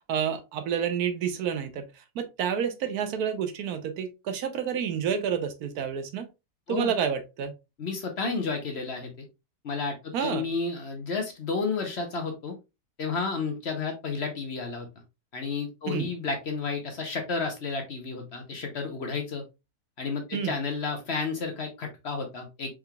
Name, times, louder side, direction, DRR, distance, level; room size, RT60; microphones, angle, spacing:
voice 1, 0.1-1.9 2.1-6.3 6.7-7.5 10.1-10.5 15.9-16.1 20.3-20.5, right 7 dB, 75° right, 1.2 m, -29 dB
voice 2, 7.8-9.1 9.6-12.5 13.0-14.9 15.3-19.4 20.0-22.7, left 4 dB, 50° left, 0.9 m, -31 dB
4.7 x 3.5 x 2.2 m
omnidirectional pair, 1.6 m